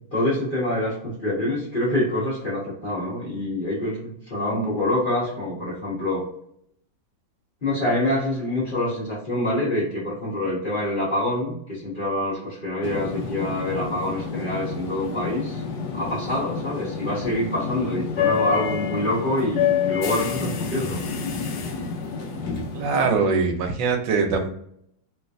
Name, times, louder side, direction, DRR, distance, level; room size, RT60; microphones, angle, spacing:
voice 1, 0.1-4.0 4.3-6.2 7.6-15.6 15.9-21.0, left 1 dB, 35° left, -8 dB, 1.1 m, -26 dB
sound 1, 12.8-23.2, left 6 dB, 75° left, 1.2 m, -28 dB
voice 2, 22.7-24.5, right 4 dB, 85° right, 5 dB, 1.4 m, -22 dB
3.2 x 3.1 x 2.5 m, 0.70 s
omnidirectional pair, 1.9 m